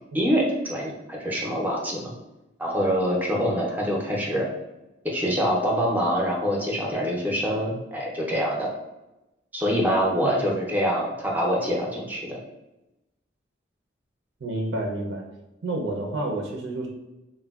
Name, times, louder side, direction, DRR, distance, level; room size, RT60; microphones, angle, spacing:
voice 1, 0.1-2.1 2.6-4.5 5.0-8.7 9.5-12.4, equal, 10° right, -2 dB, 0.5 m, -25 dB
voice 2, 14.4-15.2 15.6-16.9, right 2 dB, 80° right, 0 dB, 0.5 m, -29 dB
3.3 x 2.2 x 2.3 m, 0.97 s
head